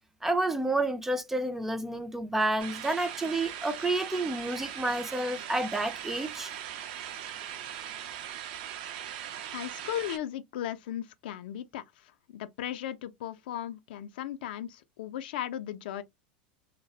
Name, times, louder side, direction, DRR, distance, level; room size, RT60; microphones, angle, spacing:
voice 1, 0.2-6.5, right 2 dB, 5° right, 0.3 m, -30 dB
sound 1, 2.6-10.2, right 10 dB, 70° right, 0.4 m, -40 dB
voice 2, 9.5-16.0, left 11 dB, 80° left, 0.3 m, -37 dB
2.3 x 2.0 x 2.6 m
supercardioid pair, 120°, 5 cm